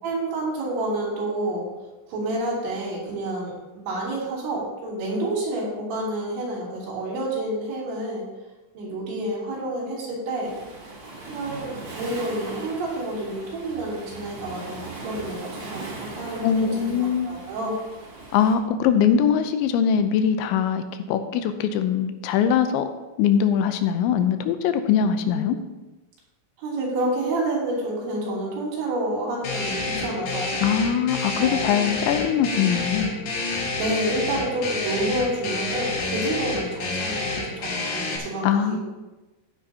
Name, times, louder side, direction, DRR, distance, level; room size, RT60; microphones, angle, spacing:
voice 1, 0.0-1.7 2.1-8.2 8.8-10.5 11.3-17.0 17.3-17.8 18.8-19.1 25.3-25.4 26.6-30.5 31.4-31.7 33.8-38.8, right 1 dB, 85° right, -5 dB, 5.7 m, -29 dB
Waves surf, 10.4-18.5, right 3 dB, 35° right, 2.4 m, -39 dB
voice 2, 16.4-17.3 18.3-22.9 23.2-25.6 30.6-33.1 38.4-38.8, left 8 dB, 85° left, 8 dB, 3.1 m, -22 dB
sound 1, 29.4-38.2, left 3 dB, 55° left, 3.0 m, -29 dB
14.0 x 10.5 x 2.9 m, 1.1 s
omnidirectional pair, 5.2 m